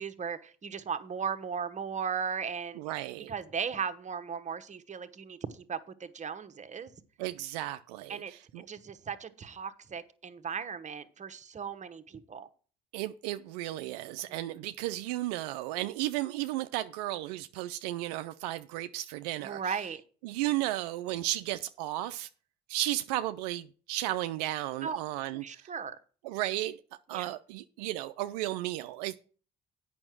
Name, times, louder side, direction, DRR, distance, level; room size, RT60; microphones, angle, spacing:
voice 1, 0.0-2.8 3.3-6.9 8.1-12.5 14.3-14.6 19.4-20.0 24.8-25.0 25.3-26.0 27.1-27.3, right 6 dB, 35° right, 1.1 m, -37 dB
voice 2, 2.8-3.3 7.2-8.7 12.9-19.8 20.2-22.3 22.7-25.7 26.2-26.8 27.1-29.2, right 15 dB, 85° right, 0.4 m, -34 dB
8.8 x 5.8 x 6.1 m
hypercardioid pair, 60°, 20 cm